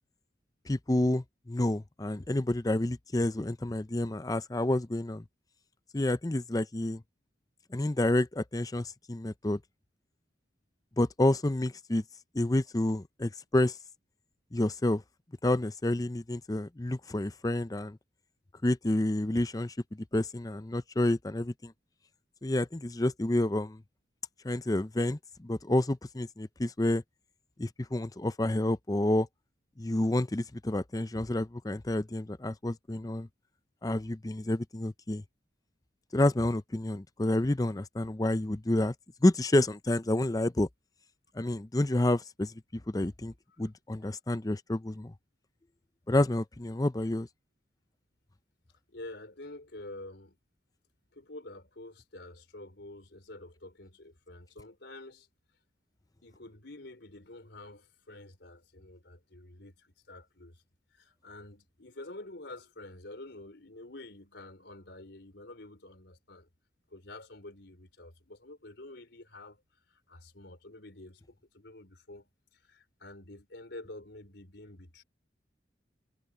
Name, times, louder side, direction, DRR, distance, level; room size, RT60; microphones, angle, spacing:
voice 1, 0.7-5.2 5.9-7.0 7.7-9.6 11.0-12.0 12.3-13.7 14.5-15.0 15.4-18.0 18.6-19.7 20.1-21.7 22.4-23.8 24.4-27.0 27.6-29.3 29.8-33.3 33.8-35.2 36.1-38.9 39.2-40.7 41.4-43.3 43.6-45.1 46.1-47.3, left 1 dB, 20° left, 0.6 m, -29 dB
voice 2, 48.9-50.4 51.1-55.3 56.2-60.6 60.9-66.5 66.9-69.6 69.9-75.0, left 2 dB, 65° left, 4.1 m, -48 dB
head